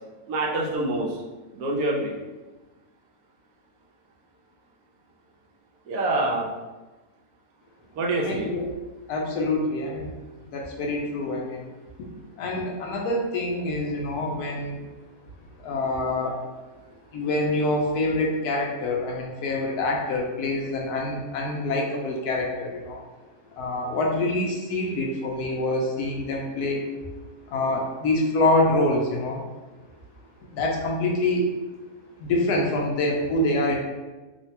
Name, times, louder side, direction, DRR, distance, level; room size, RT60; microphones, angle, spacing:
voice 1, 0.3-1.2 1.5-2.1 5.9-6.5 7.9-8.5, right 2 dB, 75° right, -2 dB, 1.0 m, -26 dB
voice 2, 8.2-8.7 9.1-10.1 10.5-11.7 12.0-12.1 12.4-14.8 15.6-16.4 17.1-23.0 23.6-26.9 27.5-29.4 30.5-31.4 32.2-33.8, left 2 dB, 85° left, 0 dB, 1.1 m, -26 dB
3.1 x 2.1 x 2.8 m, 1.2 s
omnidirectional pair, 1.6 m